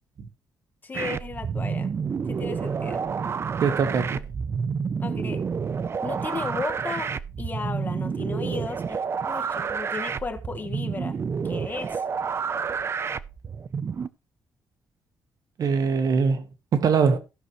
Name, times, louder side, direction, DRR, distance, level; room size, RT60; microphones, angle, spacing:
voice 1, 0.8-1.9 2.3-3.0 5.0-5.4 6.0-7.1 7.4-9.0 9.3-11.2 11.4-12.0, left 4 dB, 25° left, 1.2 m, -34 dB
sound 1, 0.9-14.1, right 6 dB, 35° right, 0.5 m, -29 dB
voice 2, 3.6-4.2 15.6-16.4 16.7-17.2, right 5 dB, 55° right, 1.1 m, -22 dB
16.0 x 6.2 x 3.0 m
cardioid pair, 125°, 7 cm